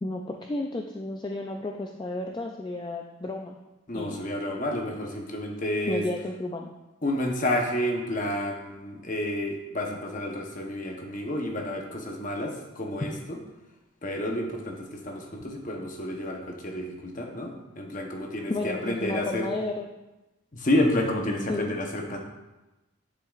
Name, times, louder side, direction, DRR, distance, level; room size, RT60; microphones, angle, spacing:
voice 1, 0.0-3.6 3.9-4.2 5.9-6.7 18.5-19.9 21.5-21.8, left 2 dB, 20° left, 2 dB, 0.3 m, -32 dB
voice 2, 3.9-6.0 7.0-13.4 14.0-19.5 20.5-22.2, left 1 dB, 40° left, 1 dB, 0.9 m, -30 dB
10.0 x 5.6 x 2.5 m, 1.0 s
head